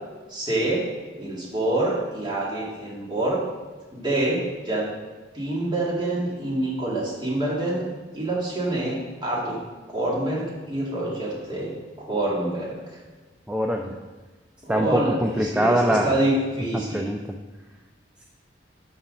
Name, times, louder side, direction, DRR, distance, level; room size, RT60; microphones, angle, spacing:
voice 1, 0.3-0.8 1.2-3.4 3.9-4.9 5.3-7.8 8.1-9.6 9.9-11.7 12.0-12.7 14.6-17.1, right 1 dB, 25° right, -5 dB, 2.1 m, -26 dB
voice 2, 13.5-14.0 14.7-16.1 16.7-17.2, equal, 5° right, 2 dB, 0.4 m, -23 dB
11.5 x 4.0 x 5.3 m, 1.3 s
head